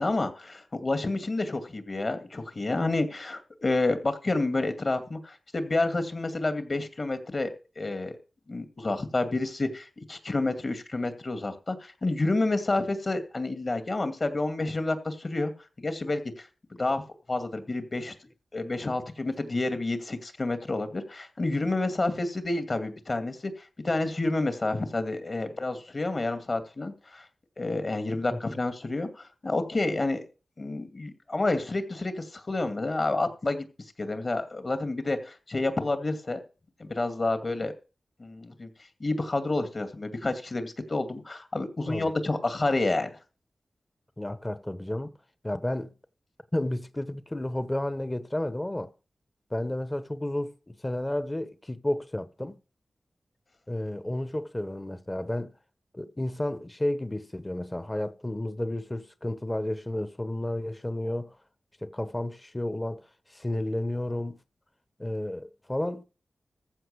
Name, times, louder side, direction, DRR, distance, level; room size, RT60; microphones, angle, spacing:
voice 1, 0.0-8.2 8.5-15.5 15.8-16.5 16.8-17.0 17.3-18.1 18.5-23.5 23.8-27.2 27.6-30.2 30.6-33.6 34.0-36.4 36.8-37.7 38.2-38.7 39.0-43.2, left 2 dB, 45° left, 2.4 m, -29 dB
voice 2, 28.3-28.6 41.9-42.1 44.2-45.1 45.4-45.9 46.5-48.9 49.5-52.6 53.7-55.5 55.9-61.4 61.8-64.4 65.0-66.0, left 1 dB, 20° left, 1.1 m, -32 dB
14.5 x 5.4 x 6.8 m
wide cardioid pair, 70°, 0 cm